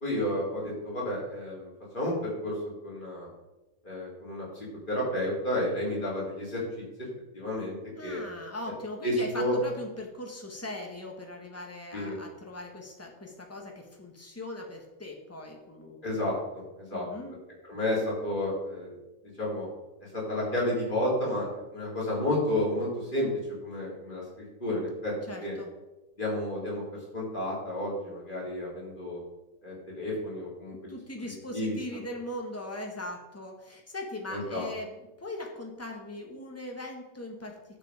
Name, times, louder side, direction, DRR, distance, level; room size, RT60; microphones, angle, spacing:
voice 1, 0.0-2.5 2.8-3.3 3.8-4.5 4.9-6.6 7.3-8.2 9.0-9.6 11.9-12.2 16.0-17.1 17.7-18.9 19.4-19.7 20.0-23.3 23.6-25.1 25.4-25.6 26.2-26.8 27.1-29.2 29.6-30.9 31.5-31.8 34.3-34.7, left 1 dB, 35° left, -5 dB, 3.7 m, -31 dB
voice 2, 8.0-16.2 16.9-17.4 25.3-25.7 30.9-37.6, left 1 dB, 10° left, 1 dB, 1.5 m, -40 dB
10.5 x 6.9 x 5.1 m, 1.1 s
omnidirectional pair, 1.4 m